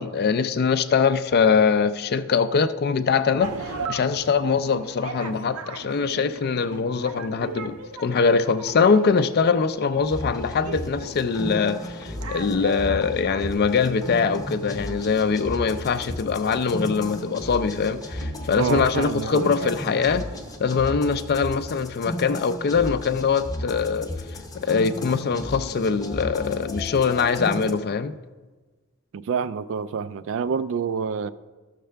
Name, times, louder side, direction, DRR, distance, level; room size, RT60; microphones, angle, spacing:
voice 1, 0.0-20.3 20.6-24.1 24.5-28.1, left 5 dB, 45° left, 0.4 m, -23 dB
sound 1, 3.4-20.5, right 4 dB, 85° right, 0.7 m, -40 dB
sound 2, 10.1-27.7, left 1 dB, 15° left, 0.7 m, -34 dB
voice 2, 18.5-19.5 29.1-31.3, right 6 dB, 60° right, 0.3 m, -27 dB
12.5 x 6.6 x 3.4 m
head